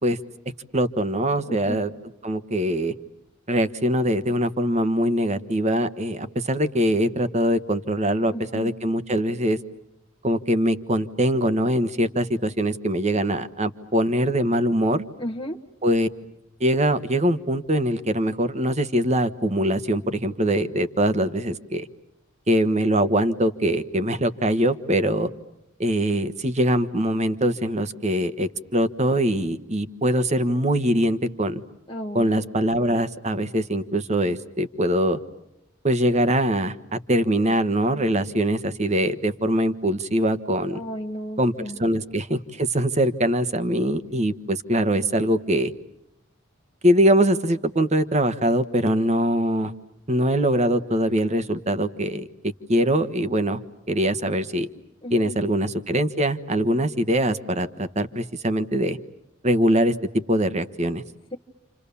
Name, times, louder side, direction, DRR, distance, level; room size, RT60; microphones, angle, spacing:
voice 1, 0.7-1.9 2.2-2.9 3.5-9.6 10.2-15.0 15.8-16.1 16.6-21.9 22.5-25.3 25.8-31.6 32.1-35.2 35.8-36.7 37.1-40.8 41.4-41.5 41.8-45.7 46.8-49.7 50.1-52.3 52.7-53.6 53.9-54.7 55.1-59.0 59.4-59.9 60.3-61.0, equal, 30° right, 11 dB, 1.4 m, -22 dB
voice 2, 1.5-1.8 8.3-8.7 15.2-15.6 31.9-32.3 40.7-41.7 55.0-55.3, equal, 20° left, -1 dB, 1.3 m, -33 dB
29.5 x 28.0 x 7.0 m, 0.86 s
head